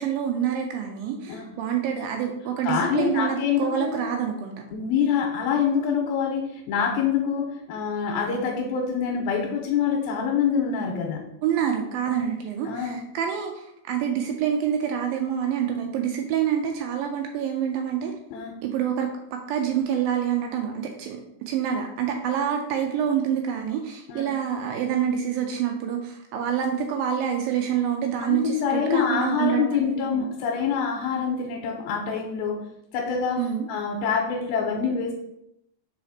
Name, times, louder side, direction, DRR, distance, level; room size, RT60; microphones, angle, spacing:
voice 1, 0.0-4.5 11.4-18.1 18.6-30.3 33.4-33.7, right 8 dB, 80° right, 3 dB, 2.3 m, -27 dB
voice 2, 2.6-4.0 4.7-11.2 12.1-12.2 12.7-13.0 18.3-18.6 24.1-24.3 28.2-32.7 32.9-33.4 33.7-35.1, left 6 dB, 85° left, 1 dB, 2.5 m, -25 dB
4.9 x 4.8 x 4.1 m, 0.78 s
omnidirectional pair, 4.2 m